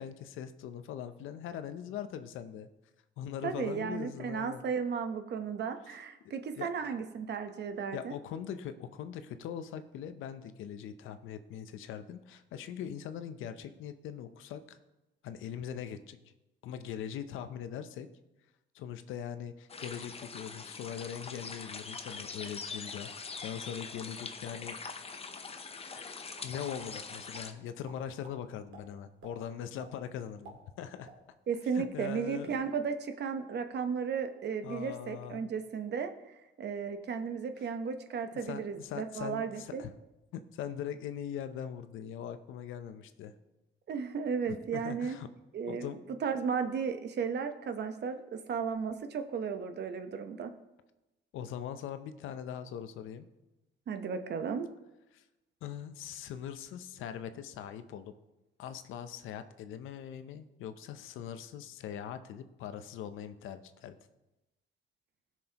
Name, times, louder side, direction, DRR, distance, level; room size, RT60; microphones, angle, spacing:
voice 1, 0.0-2.7 3.2-4.6 6.2-6.7 7.9-14.8 15.2-16.2 16.6-18.1 18.7-24.8 26.0-31.1 31.7-32.6 34.6-35.5 38.3-39.9 40.3-43.3 44.5-45.3 45.7-46.0 51.3-53.3 55.1-55.2 55.6-58.1 58.6-64.0, left 9 dB, 85° left, 10 dB, 0.7 m, -41 dB
voice 2, 3.4-8.1 31.5-39.8 43.9-45.2 45.5-45.9 46.2-50.5 53.9-54.7, right 6 dB, 60° right, 7 dB, 0.9 m, -35 dB
sound 1, 19.7-27.5, left 4 dB, 30° left, 0.8 m, -43 dB
sound 2, 26.3-26.9 27.3-27.5 27.8-28.4 28.7-28.8 29.2-29.3 29.8-29.9 30.3-31.5 31.8-31.9 32.3-32.6, right 3 dB, 90° right, 2.0 m, -52 dB
16.0 x 6.2 x 2.9 m, 1.0 s
cardioid pair, 90°, 20 cm